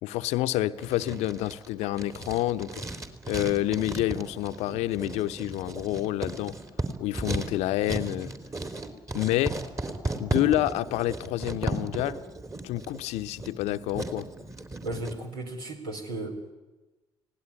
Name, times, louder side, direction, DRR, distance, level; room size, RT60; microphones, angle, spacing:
voice 1, 0.0-2.8 3.3-6.5 7.0-8.3 9.1-9.6 10.2-12.2 12.6-14.3, left 15 dB, 65° left, 12 dB, 0.8 m, -28 dB
Writing, 0.8-15.2, right 2 dB, 25° right, 3.3 m, -35 dB
voice 2, 14.8-16.5, right 2 dB, 80° right, 3 dB, 3.9 m, -35 dB
28.5 x 18.0 x 9.7 m, 1.1 s
figure-of-eight pair, 45°, 12 cm